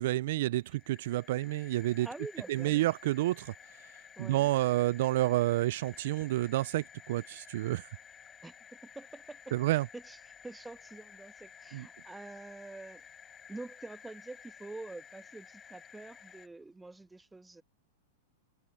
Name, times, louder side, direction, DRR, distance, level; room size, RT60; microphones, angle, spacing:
voice 1, 0.0-2.1 2.5-3.5 4.2-7.8 9.5-9.9 11.7-11.9, right 16 dB, 65° right, 0.4 m, -29 dB
sound 1, 0.6-16.5, left 7 dB, 20° left, 4.8 m, -54 dB
voice 2, 2.0-2.9 4.2-4.5 8.4-8.5 8.8-9.5 9.9-13.0 13.5-17.6, right 2 dB, 10° right, 1.2 m, -46 dB
hypercardioid pair, 115°, 0 cm